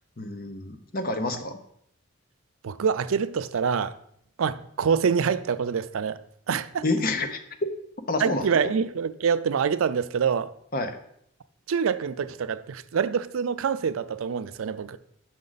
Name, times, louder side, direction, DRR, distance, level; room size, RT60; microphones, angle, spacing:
voice 1, 0.2-1.6 6.8-7.4 8.1-8.7 10.7-11.0, left 2 dB, 45° left, 0.9 m, -28 dB
voice 2, 2.6-4.0 4.4-6.2 6.5-6.8 8.2-10.5 11.7-15.0, right 6 dB, 80° right, 0.4 m, -26 dB
7.5 x 6.3 x 4.0 m
head